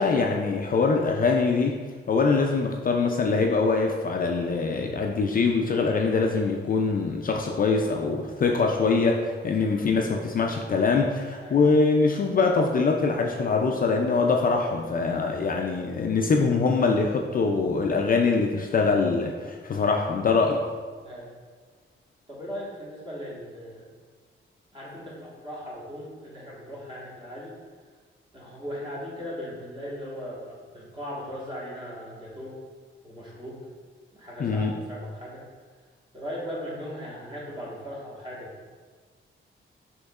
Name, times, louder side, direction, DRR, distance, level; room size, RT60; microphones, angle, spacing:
voice 1, 0.0-1.7 2.1-20.6 34.4-34.7, left 4 dB, 45° left, 1 dB, 0.4 m, -23 dB
voice 2, 22.3-23.9 24.7-27.5 28.3-32.6 33.0-33.6 34.1-35.4 36.1-38.7, equal, 25° right, -6 dB, 1.5 m, -38 dB
6.2 x 3.0 x 2.4 m, 1.5 s
cardioid pair, 105°, 21 cm